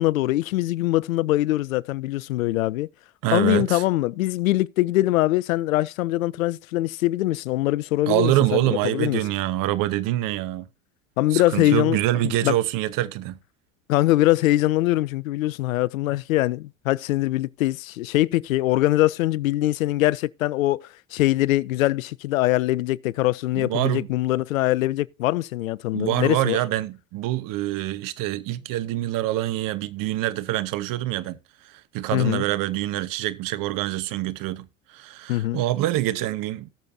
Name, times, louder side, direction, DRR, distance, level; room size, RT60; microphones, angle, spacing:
voice 1, 0.0-2.9 3.3-9.2 11.2-12.0 12.2-12.5 13.9-26.6 32.1-32.4 35.3-35.6, left 16 dB, 85° left, 0.5 m, -23 dB
voice 2, 3.2-3.8 8.1-10.7 11.3-13.4 23.5-24.1 25.9-31.4 31.6-36.7, right 15 dB, 55° right, 1.0 m, -25 dB
19.0 x 6.8 x 2.7 m
hypercardioid pair, 70°, 40 cm